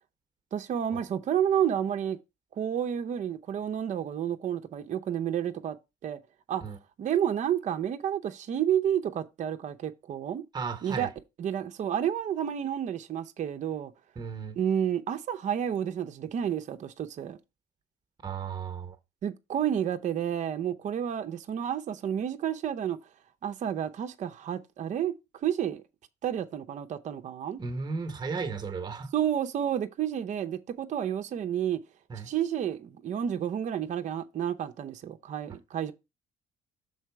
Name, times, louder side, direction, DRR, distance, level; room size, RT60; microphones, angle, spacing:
voice 1, 0.5-2.2 2.6-5.8 6.0-6.2 6.5-6.6 7.0-10.4 10.8-11.1 11.4-13.9 14.6-17.4 19.2-23.0 23.4-25.1 25.4-25.8 26.2-27.6 29.1-31.8 32.2-35.9, right 9 dB, 45° right, 0.7 m, -30 dB
voice 2, 10.5-11.1 14.2-14.6 18.2-19.0 27.6-29.1 32.1-32.3, right 5 dB, 25° right, 1.0 m, -35 dB
6.4 x 4.0 x 4.6 m
cardioid pair, 110°, 17 cm